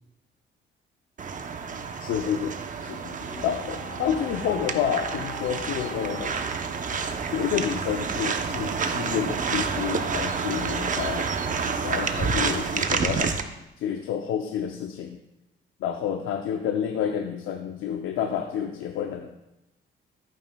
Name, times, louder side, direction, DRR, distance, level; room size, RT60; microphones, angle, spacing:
sound 1, 1.2-13.4, right 5 dB, 40° right, 0.8 m, -29 dB
voice 1, 2.0-6.3 7.3-11.3 11.8-13.3 13.8-15.2 15.8-19.3, left 8 dB, 80° left, 4 dB, 0.7 m, -29 dB
sound 2, 3.2-12.3 13.0-13.1, left 3 dB, 30° left, 1.8 m, -45 dB
13.5 x 9.2 x 2.3 m, 0.91 s
cardioid pair, 90°, 20 cm